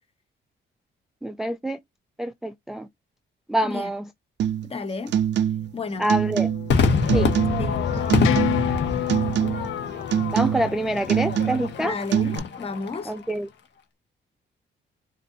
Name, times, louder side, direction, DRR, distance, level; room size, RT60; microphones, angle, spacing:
voice 1, 1.2-1.8 2.2-2.9 3.5-4.1 6.0-6.5 7.1-7.3 10.3-12.0 13.1-13.5, right 1 dB, ahead, 0.3 m, -26 dB
sound 1, 4.4-4.7 5.1-5.8 6.1-6.8 7.1-7.7 8.1-8.8 9.1-9.7 10.1-10.8 11.1-11.8 12.1-12.4, right 9 dB, 60° right, 0.5 m, -24 dB
voice 2, 4.6-5.2 5.7-6.1 7.6-7.8 11.8-13.1, left 4 dB, 30° left, 0.9 m, -32 dB
sound 2, 6.0-12.0, left 13 dB, 90° left, 0.6 m, -32 dB
Crowd / Fireworks, 6.7-13.2, left 4 dB, 60° left, 1.2 m, -26 dB
4.2 x 2.6 x 2.7 m
cardioid pair, 115°, 20 cm